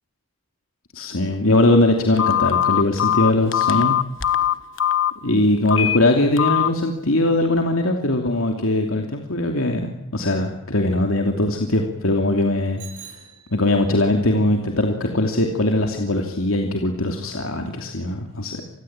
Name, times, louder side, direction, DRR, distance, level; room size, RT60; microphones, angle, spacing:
voice 1, 0.9-4.0 5.2-12.8 13.5-18.6, left 1 dB, 85° left, 3 dB, 2.8 m, -20 dB
Telephone, 2.2-5.1 5.7-6.0 6.4-6.7, left 11 dB, 65° left, 1.4 m, -20 dB
Bicycle bell, 12.8-14.0, right 9 dB, 60° right, 8.0 m, -43 dB
28.0 x 21.0 x 8.9 m, 0.83 s
head